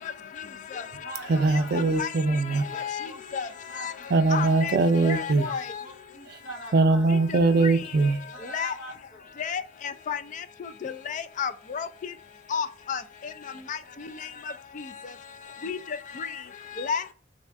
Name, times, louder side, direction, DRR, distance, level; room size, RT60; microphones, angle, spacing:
voice 1, 0.7-2.0 2.7-4.5 5.1-7.1 7.9-9.3, right 1 dB, 75° left, 0.8 m, -44 dB
voice 2, 1.3-2.8 4.1-5.5 6.3-6.4 6.7-8.2, right 3 dB, 60° right, 0.4 m, -22 dB
voice 3, 2.7-3.1 3.3-3.5 3.8-3.9 4.3-4.8 5.0-5.8 7.6-7.7 8.5-8.7 9.4-9.6 10.1-10.2 10.8-11.9 12.5-13.0 13.7-13.8 15.6-15.8 16.2-16.3 16.8-17.0, left 6 dB, 45° left, 0.3 m, -30 dB
3.5 x 2.4 x 3.3 m
head